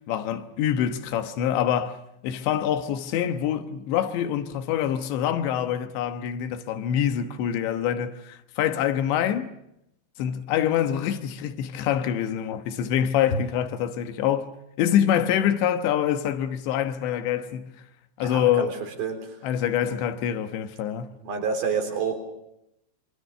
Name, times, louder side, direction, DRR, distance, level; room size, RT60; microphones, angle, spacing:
voice 1, 0.1-2.0 2.2-9.5 10.2-14.5 14.8-17.7 18.2-18.7 19.4-21.1, left 10 dB, 85° left, 3.5 m, -25 dB
voice 2, 18.2-18.7 19.0-19.2 21.2-22.1, right 6 dB, 60° right, 5.4 m, -28 dB
26.5 x 24.0 x 6.7 m
omnidirectional pair, 5.0 m